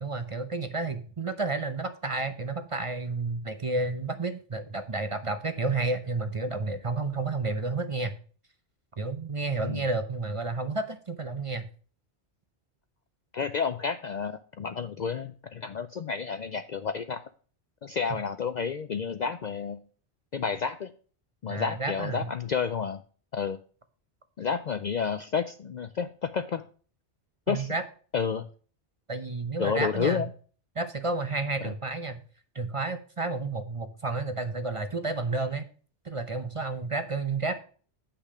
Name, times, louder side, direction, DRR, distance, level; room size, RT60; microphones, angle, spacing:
voice 1, 0.0-8.1 9.0-11.7 21.5-22.3 27.5-27.8 29.1-30.2 30.8-32.2 32.5-35.6 36.0-37.6, right 3 dB, 35° right, 10 dB, 0.7 m, -31 dB
voice 2, 13.3-17.3 17.8-19.8 20.3-20.9 21.4-23.0 23.3-23.6 24.4-26.6 27.5-27.7 28.1-28.5 29.6-30.3 31.6-31.7, left 6 dB, 55° left, 10 dB, 0.5 m, -30 dB
8.6 x 5.8 x 4.9 m, 0.41 s
omnidirectional pair, 1.1 m